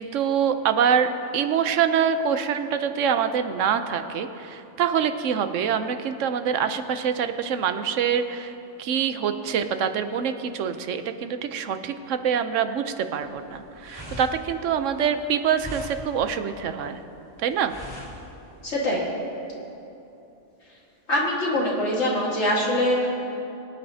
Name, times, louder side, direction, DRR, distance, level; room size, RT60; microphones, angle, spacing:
voice 1, 0.0-17.0 17.4-17.7, right 7 dB, 85° right, 9 dB, 1.0 m, -25 dB
sound 1, 13.2-18.7, left 1 dB, 15° left, 2.6 m, -41 dB
voice 2, 18.6-19.1 20.7-20.8 21.1-23.1, left 1 dB, 65° left, -4 dB, 2.0 m, -23 dB
22.5 x 9.7 x 2.7 m, 2.9 s
omnidirectional pair, 1.3 m